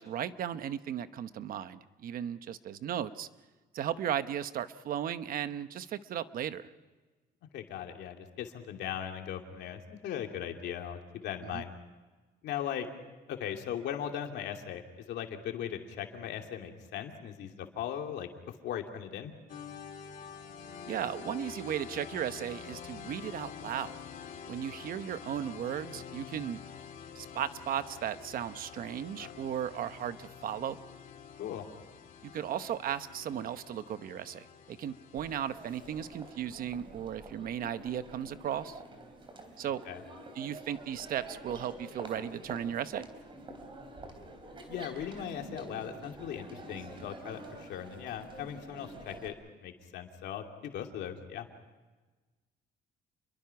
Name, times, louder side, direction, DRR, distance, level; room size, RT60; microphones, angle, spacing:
voice 1, 0.0-3.3 3.7-6.7 11.5-11.6 20.8-23.9 24.5-26.6 27.1-30.8 32.2-38.8 39.6-39.8 40.4-43.1, right 10 dB, 55° right, 12 dB, 1.0 m, -36 dB
voice 2, 7.5-11.7 12.4-12.9 13.3-18.3 18.6-19.3 29.2-29.3 31.4-31.6 39.9-40.0 44.7-49.3 49.6-51.5, left 9 dB, 70° left, 3 dB, 2.7 m, -38 dB
sound 1, 19.5-36.4, left 7 dB, 50° left, 2.1 m, -47 dB
Crowd, 35.2-49.3, right 2 dB, 30° right, 3.7 m, -48 dB
29.0 x 22.5 x 5.9 m, 1.3 s
cardioid pair, 160°, 18 cm